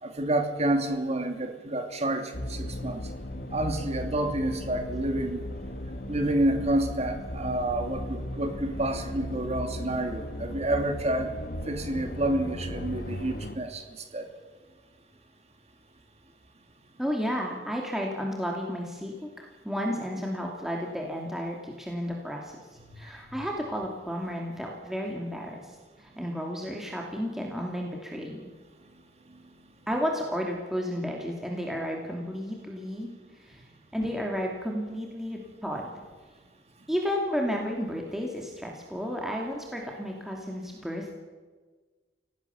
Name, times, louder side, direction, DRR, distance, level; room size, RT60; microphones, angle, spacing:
voice 1, 0.0-3.0 3.5-5.4 6.1-11.3 11.7-14.3 22.9-23.1 29.3-29.4, right 1 dB, 40° right, 5 dB, 2.8 m, -29 dB
sound 1, 2.3-13.5, left 1 dB, 55° left, 1.8 m, -36 dB
voice 2, 17.0-22.5 23.0-28.5 29.9-35.9 36.9-41.1, equal, ahead, -1 dB, 2.7 m, -32 dB
27.5 x 18.0 x 7.1 m, 1.4 s
head